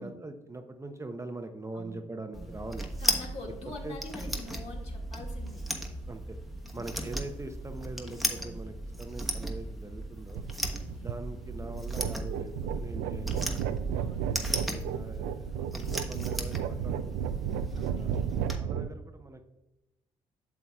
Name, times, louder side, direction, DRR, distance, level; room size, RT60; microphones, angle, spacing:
voice 1, 0.0-2.9 3.8-4.0 6.1-6.4 6.7-10.5 11.0-13.7 14.2-14.4 14.6-17.3 17.9-19.4, right 2 dB, 20° right, 6 dB, 0.7 m, -42 dB
voice 2, 1.7-2.0 2.3-2.6 3.0-5.6 6.6-6.9 8.3-8.6 10.6-11.2 14.0-14.3 17.8-18.4, left 2 dB, 50° left, 0 dB, 2.1 m, -46 dB
sound 1, 2.3-18.6, right 1 dB, ahead, 1.2 m, -36 dB
wind tube, 10.3-18.9, right 9 dB, 75° right, 0.4 m, -34 dB
7.9 x 7.2 x 2.4 m, 0.99 s
hypercardioid pair, 55°, 14 cm